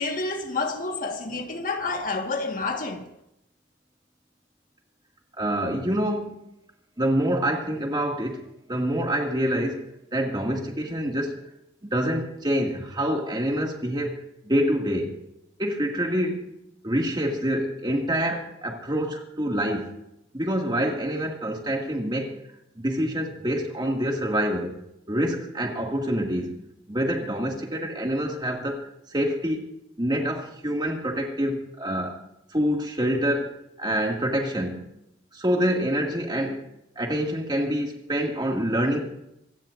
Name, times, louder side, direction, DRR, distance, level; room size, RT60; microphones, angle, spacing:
voice 1, 0.0-3.1, left 3 dB, 45° left, 1.7 m, -29 dB
voice 2, 5.4-6.4 7.0-8.4 8.7-11.4 11.8-14.2 14.4-15.1 15.6-16.4 16.8-19.9 20.3-22.4 22.8-24.8 25.1-26.6 26.9-29.7 30.0-32.2 32.5-34.9 35.3-36.6 37.0-39.0, equal, 25° right, 2.2 m, -26 dB
26.0 x 15.5 x 2.6 m
head